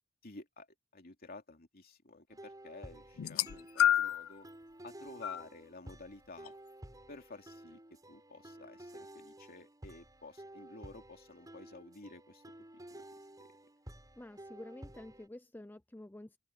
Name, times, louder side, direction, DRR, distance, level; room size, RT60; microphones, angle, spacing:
voice 1, 0.2-0.7 0.9-4.5 4.8-6.5 7.1-12.4 12.9-13.0, left 3 dB, 50° left, 2.9 m, -52 dB
sound 1, 2.3-15.3, right 1 dB, 20° right, 5.5 m, -53 dB
sound 2, 3.2-4.3 5.2-5.4 6.5-6.6, left 11 dB, 80° left, 0.4 m, -29 dB
voice 2, 14.2-16.4, left 1 dB, 10° left, 0.5 m, -49 dB
open air
head